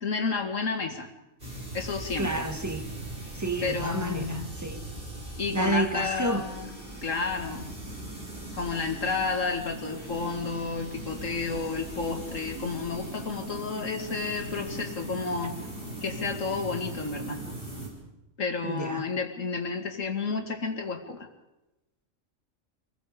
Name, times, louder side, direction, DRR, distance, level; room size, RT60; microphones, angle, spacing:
voice 1, 0.0-1.1 1.7-2.4 3.6-4.5 5.4-6.8 7.0-7.7 8.5-15.6 16.0-17.4 18.4-21.3, left 4 dB, 70° left, 2.4 m, -31 dB
sound 1, 1.4-17.9, right 1 dB, 40° right, 6.1 m, -39 dB
voice 2, 2.2-2.8 3.3-4.8 5.5-6.5 18.6-19.1, right 1 dB, 15° right, 1.5 m, -30 dB
25.5 x 20.5 x 5.1 m
omnidirectional pair, 1.4 m